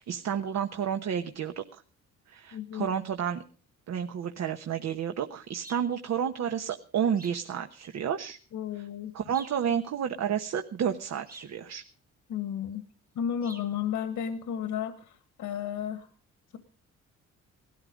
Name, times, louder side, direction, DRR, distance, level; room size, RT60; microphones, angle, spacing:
voice 1, 0.0-1.8 2.3-3.4 3.9-8.4 8.7-8.9 9.1-11.8, right 8 dB, 60° right, 7 dB, 1.1 m, -31 dB
voice 2, 2.5-2.9 8.5-9.1 12.3-12.8 13.1-16.1, left 9 dB, 75° left, 10 dB, 1.7 m, -33 dB
sound 1, 5.6-5.9 7.2-7.5 9.3-9.7 11.3-11.6 13.4-13.7, right 3 dB, 30° right, 1.8 m, -48 dB
18.0 x 13.0 x 5.2 m, 0.39 s
cardioid pair, 90°, 30 cm